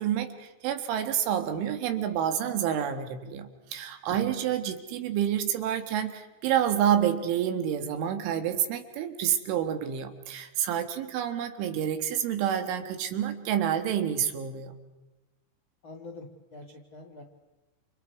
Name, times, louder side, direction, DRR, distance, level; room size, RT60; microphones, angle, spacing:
voice 1, 0.0-14.8, right 9 dB, 75° right, 7 dB, 3.9 m, -28 dB
voice 2, 15.8-17.2, left 2 dB, 45° left, 1 dB, 1.6 m, -45 dB
29.5 x 29.5 x 4.7 m, 1.1 s
omnidirectional pair, 5.7 m